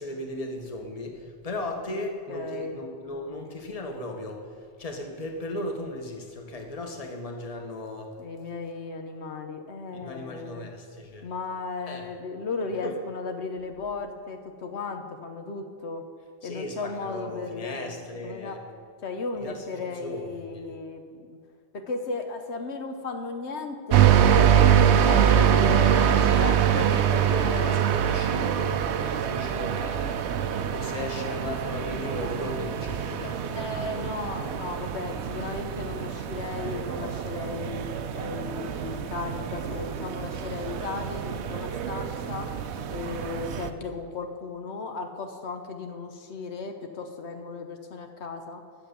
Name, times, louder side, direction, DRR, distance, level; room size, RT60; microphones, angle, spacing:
voice 1, 0.0-8.2 9.9-11.3 11.9-12.1 12.6-13.0 16.4-18.6 19.3-20.7 25.9-30.2 30.5-34.7, left 1 dB, 35° left, 3 dB, 1.3 m, -36 dB
voice 2, 2.3-2.8 8.2-10.7 11.2-16.0 16.4-18.6 19.0-21.4 21.7-26.0 26.3-26.9 27.2-27.5 33.5-37.9 38.1-42.5 42.9-48.6, left 4 dB, 80° left, 5 dB, 1.1 m, -35 dB
sound 1, 23.9-43.7, right 9 dB, 85° right, 0.9 m, -24 dB
10.5 x 7.7 x 6.7 m, 2.2 s
omnidirectional pair, 1.1 m